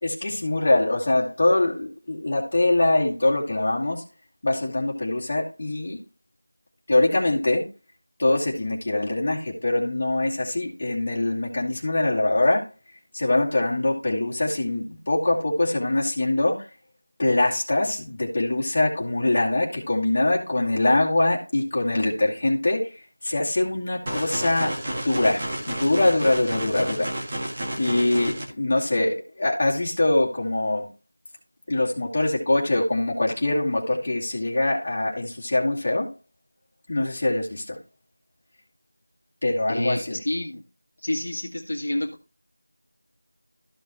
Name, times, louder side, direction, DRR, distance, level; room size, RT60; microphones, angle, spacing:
voice 1, 0.0-4.0 4.4-6.0 6.9-7.6 8.2-12.7 13.1-16.7 17.2-22.9 23.2-27.1 27.8-30.9 31.7-36.1 36.9-37.8 39.4-40.2, left 2 dB, 25° left, -5 dB, 2.3 m, -23 dB
sound 1, 24.1-28.4, right 1 dB, 25° right, 2.0 m, -31 dB
voice 2, 39.7-40.6 41.0-42.2, left 1 dB, 60° left, 0 dB, 1.7 m, -28 dB
14.0 x 5.4 x 3.0 m, 0.32 s
figure-of-eight pair, 175°, 0 cm